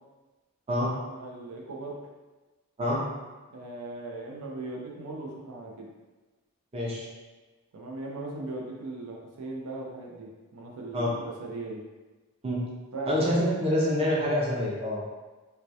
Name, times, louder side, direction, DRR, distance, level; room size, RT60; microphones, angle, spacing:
voice 1, 1.1-2.0 3.5-5.9 7.7-11.8 12.9-13.6, right 2 dB, 85° right, -2 dB, 0.5 m, -38 dB
voice 2, 6.7-7.1 10.9-11.1 12.4-12.6 13.1-15.2, left 1 dB, 25° right, -5 dB, 0.4 m, -26 dB
2.2 x 2.1 x 2.6 m, 1.2 s
head